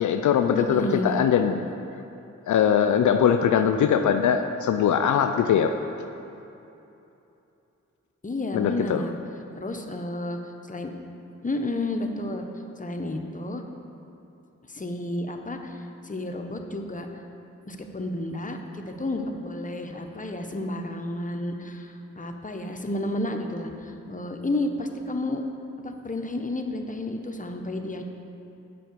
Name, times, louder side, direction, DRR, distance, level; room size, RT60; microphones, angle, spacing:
voice 1, 0.0-1.6 2.5-5.7 8.5-9.0, left 8 dB, 75° left, 7 dB, 0.4 m, -21 dB
voice 2, 0.5-1.2 8.2-9.1 9.5-10.9 11.4-12.4 12.8-13.6 14.7-17.3 17.7-25.4 25.8-28.0, left 1 dB, 25° left, 4 dB, 1.0 m, -31 dB
7.6 x 5.7 x 6.8 m, 2.8 s
cardioid pair, 45°, 30 cm